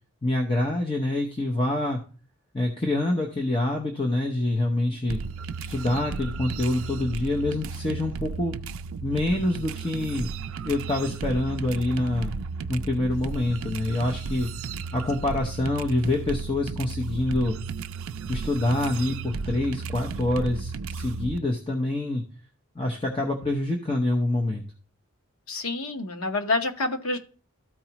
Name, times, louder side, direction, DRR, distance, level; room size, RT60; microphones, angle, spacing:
voice 1, 0.2-2.0 2.5-5.2 5.6-8.5 9.0-10.3 10.6-12.3 12.7-14.5 14.9-17.6 18.3-22.2 22.8-24.6, left 2 dB, 25° left, 1 dB, 0.8 m, -26 dB
sound 1, 5.1-21.4, right 4 dB, 70° right, 0.4 m, -34 dB
voice 2, 25.5-27.2, left 3 dB, 85° left, 5 dB, 1.1 m, -27 dB
13.5 x 4.6 x 3.0 m, 0.38 s
head